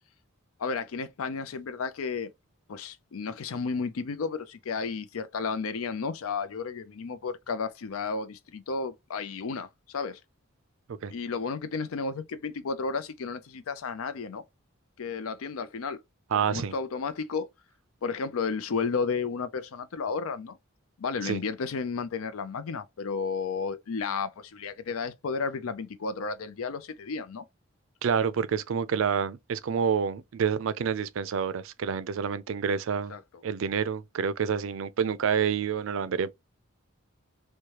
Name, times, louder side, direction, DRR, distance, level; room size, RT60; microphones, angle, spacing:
voice 1, 0.6-2.3 2.7-10.2 11.1-14.4 15.0-16.0 16.3-17.5 18.0-20.6 21.0-27.4 33.1-33.2, left 5 dB, 80° left, 0.5 m, -32 dB
voice 2, 16.3-16.7 21.2-21.4 28.0-33.1 33.4-36.3, right 7 dB, 70° right, 0.4 m, -28 dB
4.6 x 2.2 x 2.8 m
head